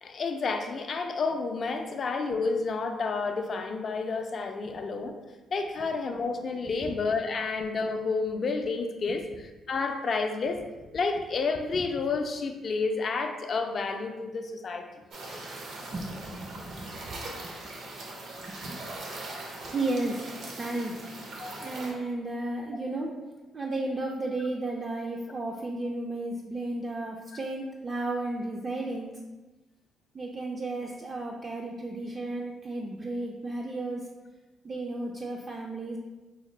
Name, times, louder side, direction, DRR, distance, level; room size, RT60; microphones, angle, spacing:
voice 1, 0.0-5.2 5.5-10.6 10.9-14.8 21.4-21.7, left 4 dB, 50° left, 5 dB, 0.4 m, -30 dB
sound 1, 15.1-21.9, right 2 dB, 75° right, 0.7 m, -41 dB
voice 2, 15.9-17.2 18.4-18.8 19.5-20.2 20.5-21.0 21.5-23.1 23.5-29.2 30.1-34.1 34.6-36.0, right 2 dB, 35° right, -1 dB, 0.3 m, -34 dB
4.1 x 2.1 x 3.1 m, 1.2 s
cardioid pair, 90°, 0 cm